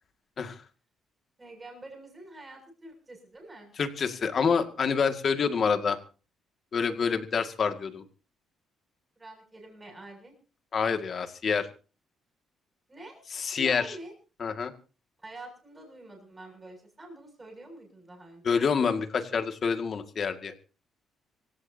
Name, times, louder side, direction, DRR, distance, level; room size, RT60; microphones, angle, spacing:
voice 1, 1.4-3.7 9.2-10.3 12.9-13.2 13.6-14.1 15.2-18.6, right 2 dB, 15° right, 2 dB, 7.2 m, -46 dB
voice 2, 3.8-6.0 6.7-8.0 10.7-11.7 13.3-14.0 14.4-14.7 18.4-20.5, left 6 dB, 35° left, 8 dB, 2.0 m, -27 dB
26.0 x 16.0 x 2.8 m, 0.36 s
cardioid pair, 175°, 0 cm